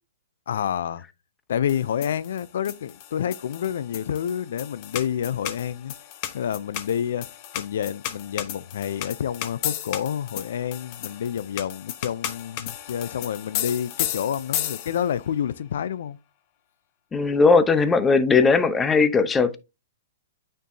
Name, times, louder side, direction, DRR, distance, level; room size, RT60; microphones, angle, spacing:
voice 1, 0.5-1.0 1.5-5.9 6.3-7.3 7.5-16.2, left 9 dB, 70° left, 0.4 m, -28 dB
sound 1, 1.7-15.2, left 12 dB, 40° left, 0.9 m, -34 dB
voice 2, 17.1-19.6, left 4 dB, 15° left, 0.7 m, -18 dB
9.2 x 4.4 x 2.7 m
hypercardioid pair, 135°, 0 cm